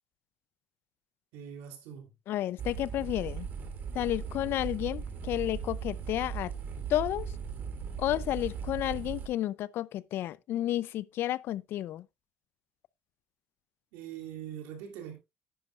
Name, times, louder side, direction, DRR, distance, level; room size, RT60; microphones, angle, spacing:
voice 1, 1.3-2.1 13.9-15.2, right 9 dB, 90° right, 3.1 m, -42 dB
voice 2, 2.3-3.5 3.9-6.5 6.9-7.3 8.0-12.0, left 13 dB, 60° left, 0.4 m, -31 dB
sound 1, 2.6-9.3, right 6 dB, 50° right, 2.2 m, -38 dB
10.5 x 9.7 x 2.3 m
cardioid pair, 120°, 4 cm